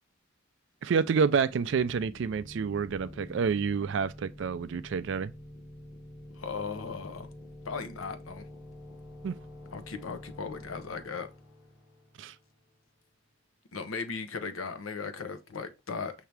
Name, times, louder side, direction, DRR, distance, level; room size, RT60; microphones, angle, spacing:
voice 1, 0.8-5.3 9.2-9.4 12.2-12.3, right 5 dB, 60° right, 0.3 m, -28 dB
sound 1, 1.2-12.7, left 1 dB, 50° left, 2.6 m, -48 dB
voice 2, 6.3-7.3 7.6-8.5 9.7-11.3 13.7-16.1, left 5 dB, 85° left, 0.7 m, -37 dB
5.8 x 2.7 x 3.2 m
head